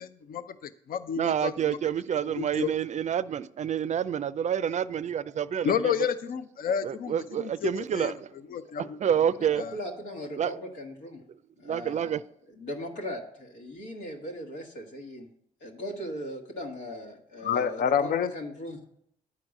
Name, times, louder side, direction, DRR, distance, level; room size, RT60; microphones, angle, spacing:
voice 1, 0.0-1.8 2.3-2.7 5.6-8.1 8.5-9.0 9.6-9.7 17.4-18.3, left 8 dB, 55° left, 0.6 m, -30 dB
voice 2, 1.2-5.9 6.8-8.3 8.8-9.6 10.4-10.6 11.6-12.2, right 9 dB, 45° right, 0.4 m, -28 dB
voice 3, 9.3-11.2 11.6-12.2 12.5-15.3 15.6-18.8, equal, 85° left, 1.7 m, -39 dB
9.6 x 4.6 x 6.5 m
supercardioid pair, 55°, 17 cm